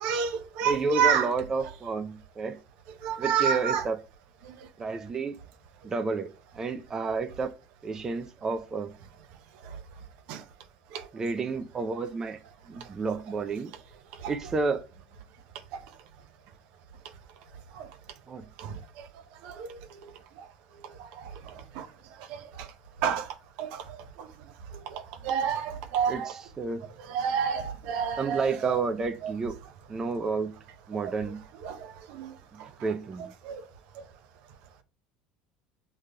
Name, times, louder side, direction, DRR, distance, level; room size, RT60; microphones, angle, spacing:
voice 1, 0.0-1.3 3.0-3.8 4.5-4.6 10.3-10.4 10.9-11.0 17.8-17.9 18.6-19.1 19.4-19.8 21.1-21.3 21.8-21.9 22.3-22.7 23.0-23.3 23.6-24.3 24.9-26.3 27.1-28.7 29.2-29.3 31.0-31.1 31.6-31.8 32.1-32.3 33.4-33.6, right 7 dB, 70° right, 0.7 m, -29 dB
voice 2, 0.6-2.6 3.2-4.0 4.8-5.4 5.8-6.3 6.6-7.5 7.8-8.9 11.1-12.4 12.7-13.7 14.3-14.8 18.3-18.4 26.1-26.8 28.2-29.6 29.9-30.5 30.9-31.4 32.5-33.3, right 4 dB, 30° right, 0.4 m, -30 dB
6.4 x 3.3 x 2.2 m
supercardioid pair, 90°, 2 cm